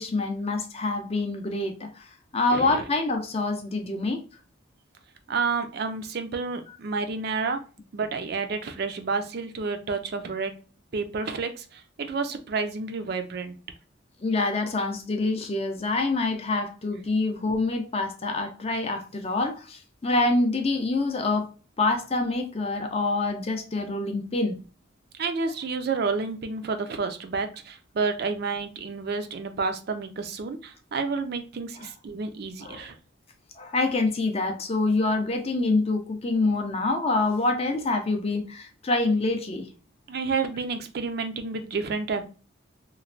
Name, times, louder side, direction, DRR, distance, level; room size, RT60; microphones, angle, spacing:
voice 1, 0.0-2.1 2.3-4.2 14.2-21.5 21.8-24.6 31.8-31.9 32.6-32.9 33.6-39.7, left 2 dB, 30° left, 0.5 m, -26 dB
voice 2, 2.5-2.8 5.3-7.6 7.9-10.5 10.9-13.6 25.1-33.0 40.1-42.3, right 4 dB, 50° right, 0.4 m, -30 dB
3.0 x 2.1 x 2.4 m
head